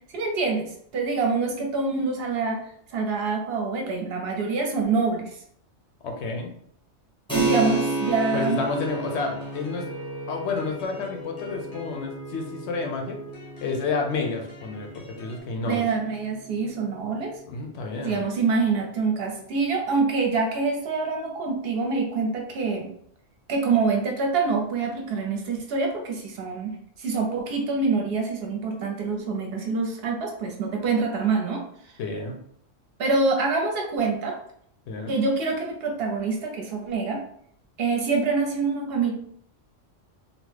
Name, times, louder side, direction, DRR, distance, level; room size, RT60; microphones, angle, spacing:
voice 1, 0.1-2.6 2.9-5.4 7.3-8.6 15.6-17.3 18.0-22.9 23.5-26.7 27.0-31.6 33.0-34.3 35.1-37.2 37.8-39.1, right 4 dB, 60° right, 2 dB, 0.7 m, -25 dB
voice 2, 6.0-6.5 8.3-9.9 10.3-13.2 13.6-15.9 17.5-18.2 32.0-32.4 34.9-35.2, left 4 dB, 70° left, 3 dB, 0.8 m, -30 dB
Keyboard (musical), 7.3-17.5, right 2 dB, 5° left, 0.7 m, -33 dB
sound 1, 8.0-15.4, right 2 dB, 45° left, 0.5 m, -44 dB
2.8 x 2.0 x 3.2 m, 0.66 s
omnidirectional pair, 1.3 m